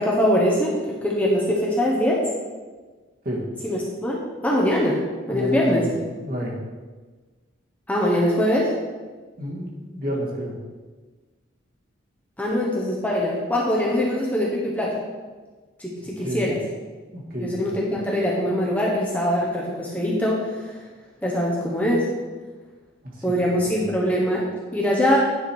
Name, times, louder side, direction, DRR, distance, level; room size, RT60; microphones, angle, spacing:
voice 1, 0.0-2.2 3.6-5.9 7.9-8.7 12.4-14.9 15.8-16.6 17.4-20.8 21.2-22.1 23.2-25.2, equal, 5° left, -4 dB, 1.1 m, -23 dB
voice 2, 5.3-5.9 6.2-6.5 9.4-10.5 16.2-16.5 17.1-17.7, equal, 45° right, -3 dB, 1.8 m, -29 dB
9.6 x 5.0 x 4.5 m, 1.3 s
head